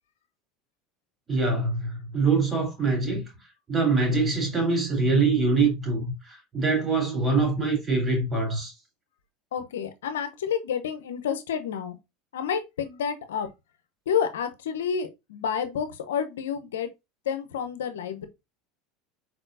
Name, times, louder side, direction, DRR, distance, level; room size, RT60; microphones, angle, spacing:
voice 1, 1.3-3.3 3.7-8.7, right 3 dB, 20° right, 3.3 m, -24 dB
voice 2, 9.5-12.0 12.3-13.5 14.1-16.9 17.2-18.3, left 7 dB, 85° left, 0.7 m, -29 dB
4.4 x 4.2 x 2.6 m
hypercardioid pair, 85°, 0 cm